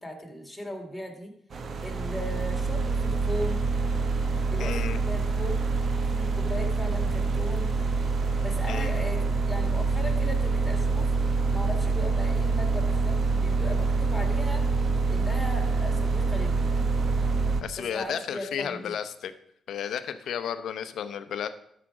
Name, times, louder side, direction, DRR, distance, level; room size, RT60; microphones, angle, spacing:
voice 1, 0.0-1.3 1.8-3.7 4.4-5.6 6.1-7.7 8.4-11.1 11.5-14.7 15.1-16.9 17.8-19.0, left 1 dB, 5° left, 1 dB, 2.6 m, -38 dB
sound 1, 1.5-17.6, right 4 dB, 55° right, 0.9 m, -26 dB
voice 2, 4.6-5.0 8.7-9.0 17.6-19.3 19.7-21.5, left 8 dB, 70° left, 11 dB, 0.7 m, -33 dB
12.5 x 5.0 x 4.9 m, 0.73 s
supercardioid pair, 65°, 0 cm